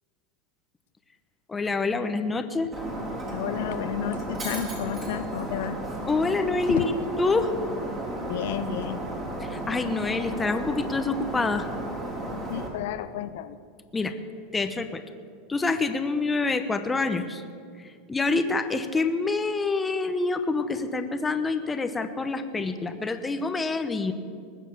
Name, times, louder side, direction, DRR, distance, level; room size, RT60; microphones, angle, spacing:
voice 1, 1.5-2.8 6.1-6.9 7.2-7.5 9.4-11.7 13.9-14.1 14.5-15.0 15.5-17.4 18.1-24.1, left 3 dB, 15° left, 9 dB, 0.9 m, -26 dB
Shatter, 2.7-12.7, right 1 dB, 25° right, 3.3 m, -34 dB
voice 2, 3.3-5.8 6.7-6.9 8.2-9.0 12.5-13.6, left 11 dB, 70° left, 12 dB, 0.5 m, -31 dB
20.0 x 7.3 x 7.1 m, 2.3 s
supercardioid pair, 135°, 0 cm